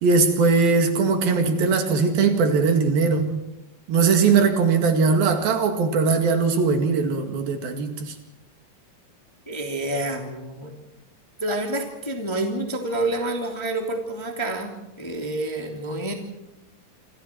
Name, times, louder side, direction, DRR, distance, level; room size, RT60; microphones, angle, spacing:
voice 1, 0.0-3.4 3.9-8.1, right 4 dB, 70° right, 3.9 m, -20 dB
voice 2, 9.5-10.7 11.4-14.7 15.0-16.1, right 2 dB, 10° left, 2.0 m, -28 dB
27.5 x 27.0 x 4.6 m
omnidirectional pair, 4.4 m